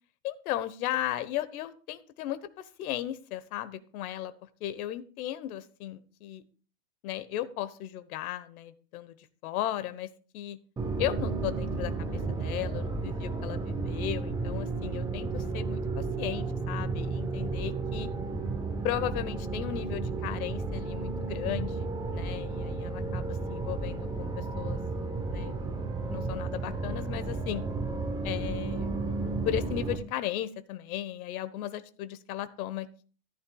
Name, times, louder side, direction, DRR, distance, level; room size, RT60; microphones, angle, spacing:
voice 1, 0.2-6.4 7.0-10.6 11.0-18.1 18.8-24.8 25.3-25.6 26.1-27.6 28.2-28.9 29.4-33.0, left 12 dB, 80° left, 13 dB, 1.2 m, -36 dB
sound 1, 10.8-30.0, right 3 dB, 10° right, 0.8 m, -33 dB
13.5 x 11.5 x 2.3 m, 0.40 s
supercardioid pair, 150°, 43 cm